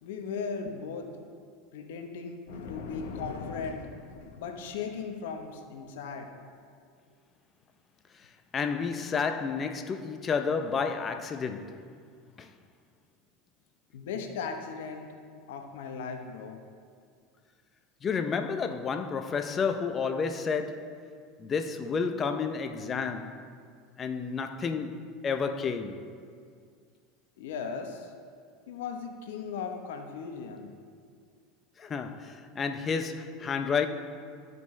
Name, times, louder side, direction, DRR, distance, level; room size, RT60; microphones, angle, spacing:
voice 1, 0.0-1.1 1.7-6.7 13.9-15.1 15.5-16.6 27.4-28.1 28.7-30.7, left 5 dB, 80° left, 0.8 m, -37 dB
voice 2, 8.5-11.8 12.4-12.5 18.0-21.0 21.4-23.4 24.0-26.1 31.8-33.9, left 5 dB, 30° left, 0.6 m, -31 dB
13.0 x 5.3 x 3.2 m
hypercardioid pair, 100°, 0 cm